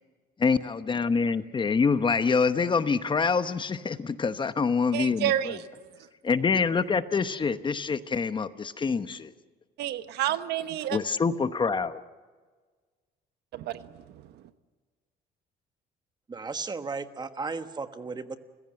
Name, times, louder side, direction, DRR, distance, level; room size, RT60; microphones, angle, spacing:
voice 1, 0.4-5.6 6.2-9.3 10.9-12.0, left 5 dB, 30° left, 11 dB, 1.0 m, -26 dB
voice 2, 4.9-5.6 9.8-11.0 13.5-13.8, right 12 dB, 80° right, 11 dB, 1.1 m, -29 dB
voice 3, 16.3-18.4, right 4 dB, 25° right, 9 dB, 1.4 m, -35 dB
30.0 x 16.0 x 7.8 m, 1.4 s
cardioid pair, 110°, 17 cm